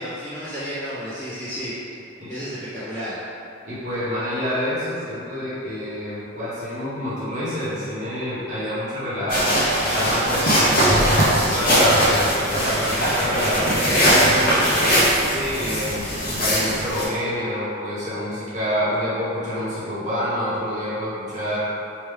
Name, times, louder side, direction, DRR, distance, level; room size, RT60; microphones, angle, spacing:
voice 1, 0.0-1.7 2.3-3.2 15.3-15.7, equal, 10° left, -18 dB, 1.2 m, -31 dB
voice 2, 3.6-9.6 9.9-15.0 15.5-21.7, equal, 35° right, -11 dB, 1.2 m, -27 dB
sound 1, 9.3-17.1, equal, 45° left, 0.9 m, -20 dB
3.3 x 3.1 x 3.3 m, 2.7 s
head